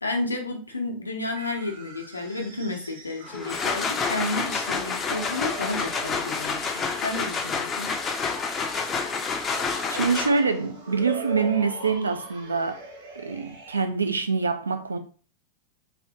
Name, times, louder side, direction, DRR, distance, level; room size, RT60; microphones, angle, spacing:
voice 1, 0.0-8.0, left 2 dB, 80° left, 0.6 m, -31 dB
sound 1, 1.3-13.8, right 2 dB, 50° right, 1.3 m, -41 dB
sound 2, 3.3-10.6, left 5 dB, 20° left, 0.4 m, -29 dB
voice 2, 9.9-12.8 13.2-15.0, right 4 dB, 75° right, 0.4 m, -25 dB
3.4 x 2.6 x 2.6 m
figure-of-eight pair, 90°, 0 cm